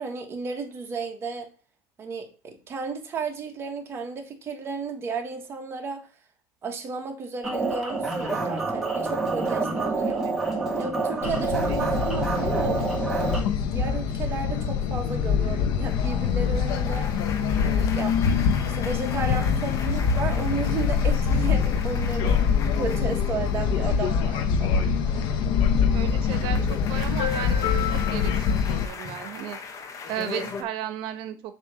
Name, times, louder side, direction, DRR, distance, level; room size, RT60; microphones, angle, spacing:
voice 1, 0.0-1.5 2.0-6.1 6.6-10.3 10.8-12.8 13.7-17.1 17.6-18.2 18.6-24.9, right 4 dB, 30° right, 1.4 m, -33 dB
sound 1, 7.4-13.4, right 3 dB, 5° right, 1.7 m, -27 dB
voice 2, 10.1-10.4 11.5-11.8 25.1-25.4 25.9-29.6 30.1-31.5, right 10 dB, 70° right, 1.0 m, -35 dB
sound 2, 11.2-28.9, left 6 dB, 75° left, 0.8 m, -24 dB
sound 3, 15.9-24.6 24.9-30.6, left 5 dB, 40° left, 1.1 m, -40 dB
7.4 x 3.1 x 6.1 m
cardioid pair, 140°, 8 cm